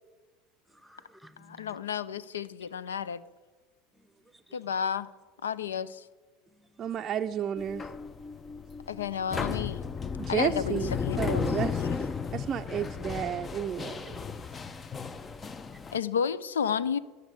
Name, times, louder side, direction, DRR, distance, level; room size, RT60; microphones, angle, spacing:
voice 1, 0.7-1.8 4.2-4.6 6.6-6.9 8.8-8.9 15.0-15.9, equal, 5° right, 1.0 m, -57 dB
voice 2, 1.4-3.2 4.5-5.1 5.4-6.1 8.9-9.8 10.3-11.4 15.9-17.0, left 7 dB, 90° left, 0.4 m, -31 dB
voice 3, 6.8-7.9 10.2-10.9 11.2-11.8 12.3-14.2, right 9 dB, 40° right, 0.4 m, -32 dB
sound 1, 7.6-16.0, left 6 dB, 30° left, 0.6 m, -34 dB
12.0 x 6.5 x 8.1 m
hypercardioid pair, 80°, 0 cm